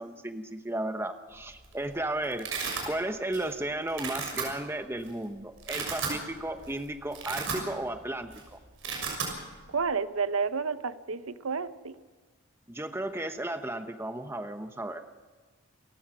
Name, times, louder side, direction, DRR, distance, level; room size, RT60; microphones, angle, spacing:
voice 1, 0.0-2.5 2.9-8.6 12.7-15.0, right 1 dB, 10° right, 8 dB, 1.0 m, -34 dB
Domestic sounds home sounds, 1.4-1.7 2.0-2.9 3.3-3.6 3.9-4.4 5.1-5.2 5.5-6.2 6.6-6.7 7.0-8.0 8.2-8.4 8.7-9.3, right 5 dB, 65° right, 6.4 m, -34 dB
voice 2, 9.7-12.0, right 5 dB, 80° right, 13 dB, 0.8 m, -30 dB
28.5 x 15.0 x 6.1 m, 1.4 s
head